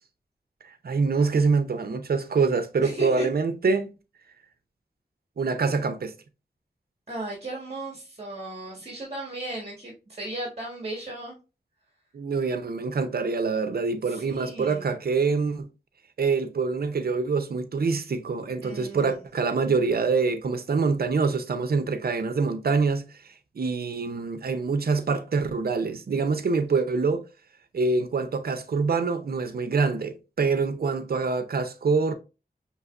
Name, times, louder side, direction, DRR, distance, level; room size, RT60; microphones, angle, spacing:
voice 1, 0.6-3.9 5.4-6.1 12.1-15.7 16.2-23.1 23.6-27.2 27.7-32.1, right 4 dB, 70° right, 0.6 m, -25 dB
voice 2, 2.8-3.3 7.1-11.4 14.0-14.9 18.6-19.2, right 1 dB, 40° right, 1.4 m, -36 dB
5.5 x 2.9 x 2.4 m
wide cardioid pair, 55°, 16 cm